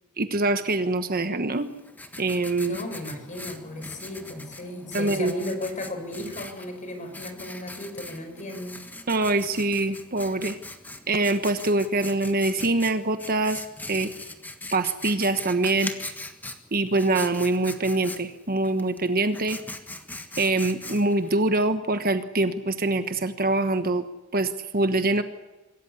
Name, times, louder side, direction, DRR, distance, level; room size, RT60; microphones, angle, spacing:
voice 1, 0.2-1.7 2.2-2.8 4.9-5.3 9.1-10.6 11.1-13.6 13.9-14.1 14.7-15.9 16.7-19.6 20.4-24.0 24.3-25.2, right 2 dB, 40° right, 9 dB, 1.3 m, -24 dB
Writing, 1.5-21.3, left 2 dB, 10° left, 1.5 m, -41 dB
voice 2, 2.6-8.8, left 1 dB, 35° left, 6 dB, 5.1 m, -35 dB
25.0 x 14.5 x 9.8 m, 1.1 s
head